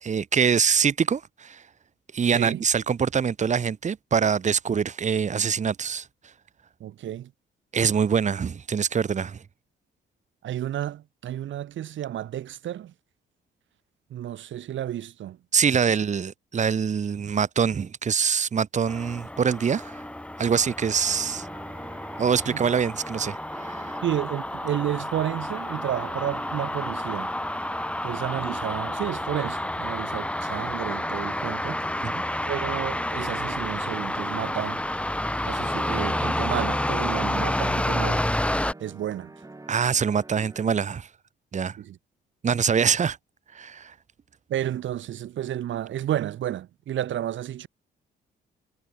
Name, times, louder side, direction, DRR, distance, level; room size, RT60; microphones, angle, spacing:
voice 1, 0.0-1.6 2.1-6.1 7.7-9.4 15.5-20.0 20.4-21.5 22.2-24.0 32.0-32.2 39.7-41.1 41.5-41.8 42.4-43.2 43.5-43.9, right 6 dB, 35° right, 1.1 m, -24 dB
voice 2, 6.8-7.3 10.4-12.9 14.1-15.4 22.5-22.6 24.0-27.3 28.0-31.8 32.4-34.8 35.4-38.3 38.8-39.3 41.8-42.0 44.5-47.7, right 11 dB, 70° right, 4.0 m, -31 dB
sound 1, 18.9-38.7, left 1 dB, 5° left, 1.9 m, -30 dB
sound 2, 21.1-40.7, right 2 dB, 15° right, 4.2 m, -46 dB
cardioid pair, 90°, 20 cm